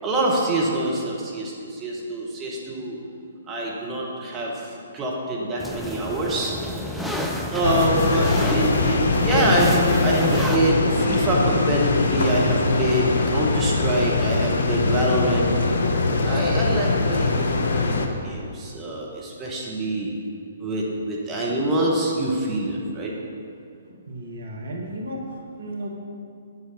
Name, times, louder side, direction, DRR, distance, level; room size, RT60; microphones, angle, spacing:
voice 1, 0.0-3.0 3.5-4.7 4.9-6.5 7.5-15.5 16.2-20.1 20.6-23.1, right 1 dB, 15° right, -4 dB, 1.5 m, -25 dB
sound 1, 5.6-10.6, left 1 dB, ahead, 0.7 m, -30 dB
sound 2, 7.6-18.1, left 3 dB, 60° left, 1.0 m, -22 dB
voice 2, 23.9-25.9, right 1 dB, 60° right, 0 dB, 1.6 m, -34 dB
8.3 x 8.2 x 5.7 m, 2.4 s
figure-of-eight pair, 125°, 0 cm